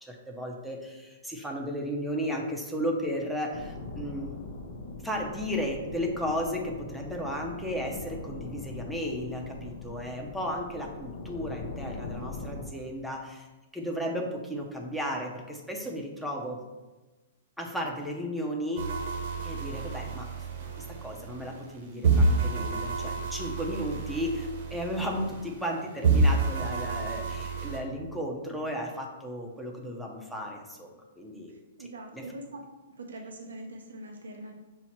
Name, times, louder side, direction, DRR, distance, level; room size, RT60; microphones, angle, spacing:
voice 1, 0.0-4.4 5.0-13.5 13.7-16.6 17.6-18.9 19.4-20.3 21.0-31.5 32.1-32.2, equal, ahead, -1 dB, 0.6 m, -34 dB
sound 1, 3.5-12.7, left 3 dB, 60° left, 0.6 m, -41 dB
sound 2, 18.8-21.8 22.0-25.7 26.0-27.8, right 3 dB, 60° right, 0.9 m, -29 dB
voice 2, 31.5-32.6 32.9-34.5, right 1 dB, 90° right, 2 dB, 0.6 m, -43 dB
5.6 x 2.1 x 4.3 m, 1.1 s
hypercardioid pair, 135°, 0 cm